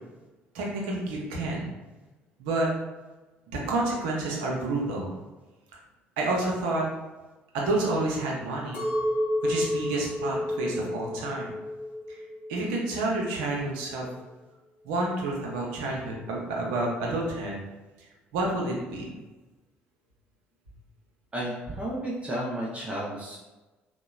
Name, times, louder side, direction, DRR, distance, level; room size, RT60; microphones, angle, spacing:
voice 1, 0.5-1.7 2.4-2.7 3.5-5.1 6.2-6.9 7.5-8.9 9.4-11.5 12.1-12.2 12.5-14.1 14.8-17.6 18.0-19.1, right 2 dB, 70° right, -2 dB, 0.6 m, -29 dB
Chink clink, 8.7-13.0 13.5-14.1, left 1 dB, 80° left, 0.6 m, -31 dB
voice 2, 21.3-23.4, right 1 dB, 20° right, -4 dB, 0.6 m, -32 dB
2.8 x 2.1 x 2.3 m, 1.1 s
hypercardioid pair, 55°, 6 cm